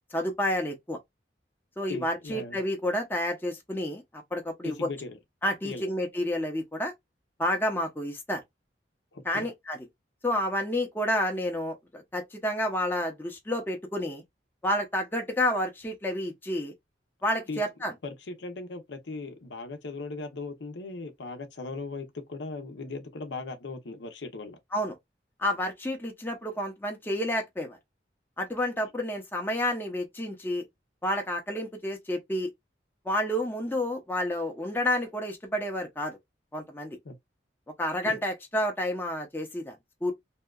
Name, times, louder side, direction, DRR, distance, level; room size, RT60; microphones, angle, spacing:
voice 1, 0.1-1.0 1.8-4.9 5.4-6.9 7.4-8.4 9.2-9.8 10.2-14.2 14.6-16.7 17.2-17.9 24.7-25.0 25.4-27.8 28.4-30.6 31.0-32.5 33.0-36.2 36.5-37.0 37.8-39.8 40.0-40.1, left 1 dB, 10° left, 0.6 m, -30 dB
voice 2, 1.9-2.6 4.6-5.2 5.6-5.9 9.1-9.5 17.5-17.6 18.0-24.6 37.0-37.2 38.0-38.2, left 3 dB, 80° left, 0.6 m, -38 dB
2.8 x 2.2 x 2.2 m
head